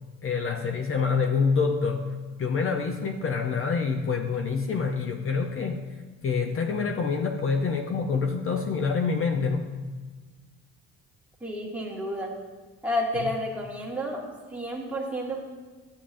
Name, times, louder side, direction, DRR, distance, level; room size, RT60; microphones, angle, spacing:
voice 1, 0.2-9.7 13.2-13.3, left 5 dB, 45° left, 4 dB, 0.6 m, -27 dB
voice 2, 11.4-12.3 12.8-14.2 14.5-15.4, equal, 5° right, -3 dB, 1.6 m, -30 dB
11.0 x 8.6 x 2.5 m, 1.4 s
cardioid pair, 115°, 31 cm